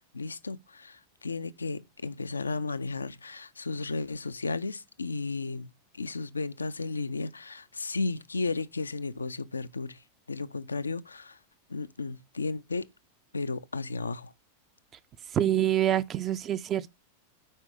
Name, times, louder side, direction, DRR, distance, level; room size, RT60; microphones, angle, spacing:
voice 1, 0.1-11.4 11.7-12.9 13.3-14.3, left 3 dB, 75° left, 0.3 m, -34 dB
voice 2, 15.3-16.9, right 11 dB, 30° right, 0.4 m, -26 dB
5.5 x 4.6 x 6.4 m
figure-of-eight pair, 90°, 0 cm